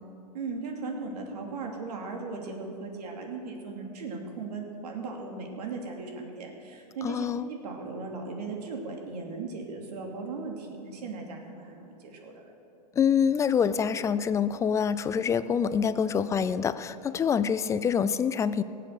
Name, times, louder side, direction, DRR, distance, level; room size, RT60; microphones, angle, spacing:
voice 1, 0.3-12.3, right 3 dB, 75° right, 1 dB, 2.7 m, -37 dB
voice 2, 7.0-7.5 13.0-18.6, left 7 dB, 15° left, 14 dB, 0.4 m, -26 dB
18.0 x 7.8 x 6.6 m, 2.7 s
hypercardioid pair, 125°, 21 cm